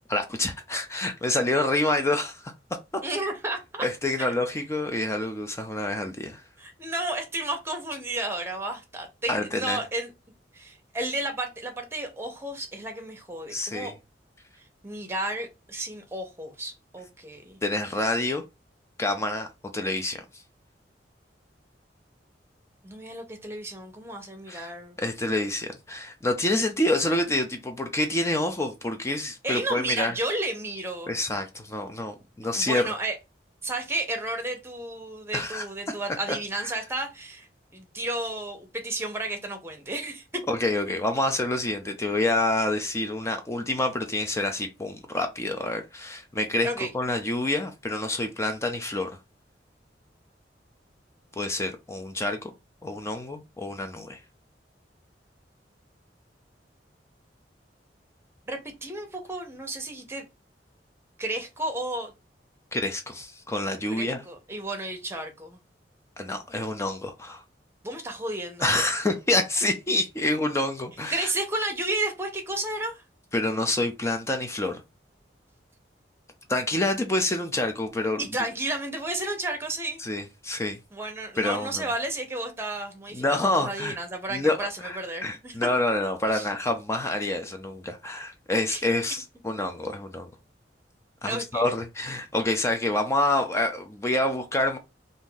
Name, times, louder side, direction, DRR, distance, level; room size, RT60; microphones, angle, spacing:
voice 1, 0.1-2.4 3.8-6.4 9.3-9.8 13.5-13.9 17.6-18.4 19.0-19.5 19.7-20.2 24.5-24.7 25.0-30.1 31.1-32.8 35.3-35.6 36.3-36.4 40.5-49.1 51.4-52.5 52.8-54.2 62.7-64.2 66.2-67.4 68.6-71.3 73.3-74.8 76.5-78.2 80.0-80.8 81.4-81.8 83.1-84.0 84.3-90.3 91.2-94.8, left 2 dB, 15° left, 0.4 m, -27 dB
voice 2, 3.0-3.9 4.2-4.3 6.6-10.1 10.5-13.9 14.8-17.6 22.8-25.0 29.4-31.1 32.5-33.2 33.6-37.5 37.7-40.2 46.6-46.9 58.5-60.3 61.2-62.1 63.9-65.6 67.8-68.8 71.1-73.0 78.2-80.0 80.9-85.6 86.3-86.5 88.7-88.8 91.3-91.6, right 2 dB, 15° right, 0.8 m, -32 dB
2.6 x 2.6 x 3.8 m
head